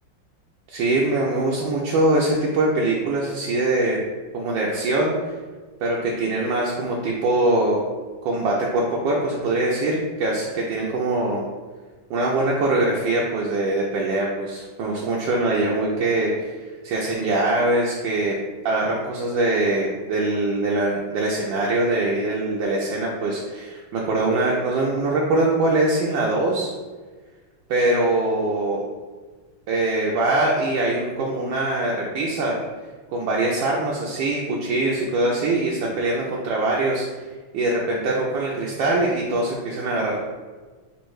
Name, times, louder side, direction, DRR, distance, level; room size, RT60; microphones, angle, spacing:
voice 1, 0.7-4.0 4.3-5.1 5.8-7.8 8.2-11.5 12.1-18.4 18.6-26.7 27.7-28.8 29.7-32.6 33.1-37.1 37.5-40.3, right 2 dB, 75° right, -3 dB, 1.3 m, -23 dB
4.3 x 2.6 x 4.6 m, 1.4 s
omnidirectional pair, 2.2 m